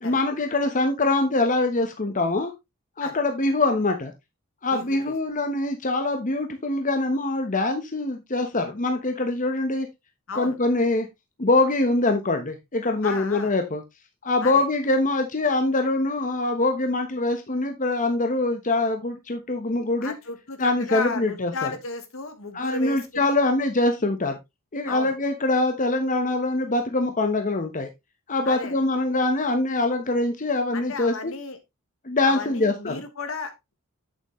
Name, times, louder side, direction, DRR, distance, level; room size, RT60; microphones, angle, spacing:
voice 1, 0.0-2.5 3.0-4.1 4.6-9.9 10.3-11.1 11.4-13.8 14.2-20.1 20.6-21.7 22.5-24.4 24.7-27.9 28.3-31.3 32.0-33.0, left 2 dB, 40° left, 5 dB, 1.1 m, -24 dB
voice 2, 4.7-5.1 10.3-10.5 13.0-13.5 14.4-14.7 20.0-23.3 24.9-25.1 28.4-28.8 30.7-31.6 32.2-33.7, left 4 dB, 65° left, 8 dB, 1.6 m, -34 dB
8.2 x 7.5 x 3.1 m, 0.21 s
head